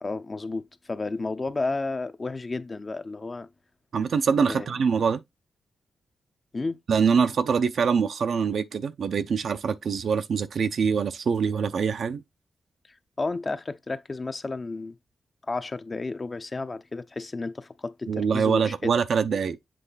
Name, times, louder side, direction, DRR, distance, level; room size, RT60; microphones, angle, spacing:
voice 1, 0.0-3.5 4.5-4.8 6.5-6.8 13.2-15.0 15.5-18.7, left 3 dB, 35° left, 0.7 m, -32 dB
voice 2, 3.9-5.2 6.9-12.2 18.1-19.6, right 6 dB, 70° right, 0.6 m, -24 dB
7.7 x 3.3 x 3.9 m
cardioid pair, 75°, 0 cm